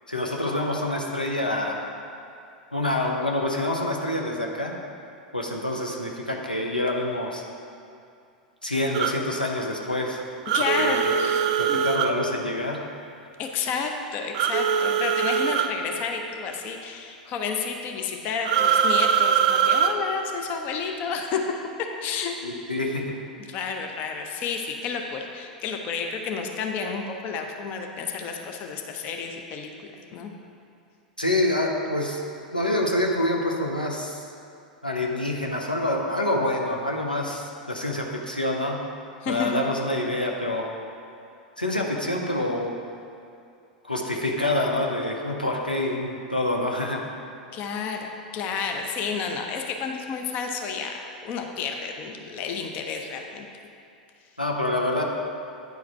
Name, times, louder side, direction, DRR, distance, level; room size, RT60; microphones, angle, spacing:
voice 1, 0.1-1.9 2.7-4.7 5.3-7.4 8.6-10.2 10.8-11.1 11.6-12.8 22.4-23.1 31.2-32.2 32.5-34.2 34.8-38.8 39.3-40.7 41.6-42.7 43.8-47.0 54.4-55.0, left 1 dB, 90° left, 0 dB, 0.8 m, -26 dB
sound 1, 8.9-9.1 10.5-12.1 14.3-15.7 18.4-20.0, right 8 dB, 50° right, 0.4 m, -22 dB
voice 2, 10.5-11.8 13.4-21.4 22.0-22.4 23.5-30.3 39.2-39.6 47.5-53.5, left 5 dB, 35° left, 3 dB, 0.7 m, -31 dB
9.4 x 4.7 x 4.6 m, 2.5 s
figure-of-eight pair, 90°, 5 cm